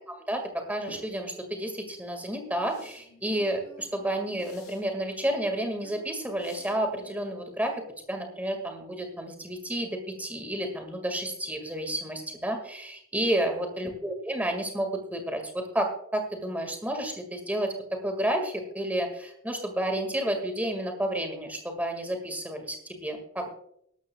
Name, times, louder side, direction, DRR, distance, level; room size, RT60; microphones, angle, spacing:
voice 1, 0.7-7.7 8.1-23.5, right 1 dB, 5° right, 4 dB, 1.8 m, -31 dB
sound 1, 0.9-1.0 2.7-3.0 4.4-4.8 6.4-6.7, left 2 dB, 85° left, 4.7 m, -49 dB
sound 2, 2.7-4.6 5.2-7.6 7.9-8.0, equal, 55° left, 4.9 m, -52 dB
18.0 x 12.5 x 2.3 m, 0.70 s
head